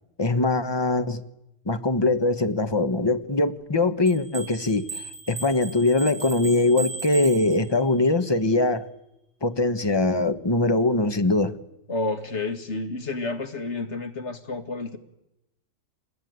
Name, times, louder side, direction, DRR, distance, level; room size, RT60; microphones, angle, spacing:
voice 1, 0.2-1.2 1.7-5.0 5.3-8.9 9.4-11.5, left 2 dB, 20° left, 1.2 m, -22 dB
sound 1, 4.1-8.0, right 4 dB, 15° right, 7.5 m, -37 dB
voice 2, 11.9-15.0, left 3 dB, 55° left, 2.2 m, -30 dB
26.0 x 21.0 x 9.5 m
omnidirectional pair, 1.4 m